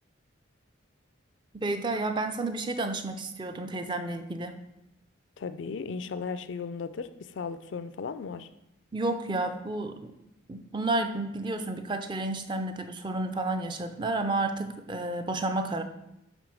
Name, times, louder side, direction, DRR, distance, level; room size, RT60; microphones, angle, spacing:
voice 1, 1.5-4.6 8.9-10.1 10.5-15.8, right 2 dB, 25° right, 7 dB, 0.5 m, -31 dB
voice 2, 5.4-8.5, left 5 dB, 65° left, 12 dB, 0.4 m, -36 dB
9.0 x 3.3 x 6.2 m, 0.85 s
head